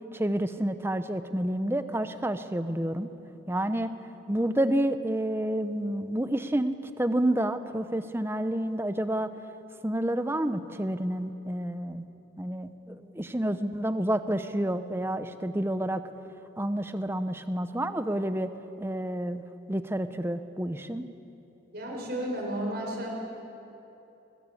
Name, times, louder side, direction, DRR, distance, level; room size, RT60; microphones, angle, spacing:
voice 1, 0.1-3.1 3.5-3.9 4.3-9.3 9.8-12.1 12.4-16.0 16.6-18.5 18.8-19.4 19.7-21.0, right 1 dB, 10° right, 10 dB, 0.8 m, -29 dB
voice 2, 21.7-23.1, right 1 dB, 55° right, -1 dB, 5.6 m, -32 dB
21.5 x 20.5 x 8.4 m, 2.9 s
head